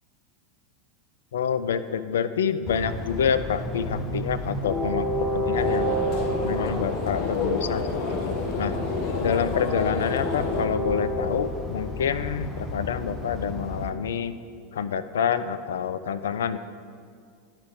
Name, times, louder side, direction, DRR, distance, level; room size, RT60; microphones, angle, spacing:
voice 1, 1.3-5.9 6.4-8.7 9.2-14.3 14.7-16.6, left 7 dB, 65° left, 12 dB, 0.3 m, -27 dB
Train, 2.7-13.9, equal, 15° left, 0.9 m, -30 dB
sound 1, 5.5-10.7, left 3 dB, 45° left, 0.9 m, -30 dB
10.5 x 4.8 x 3.7 m, 2.2 s
figure-of-eight pair, 85°, 0 cm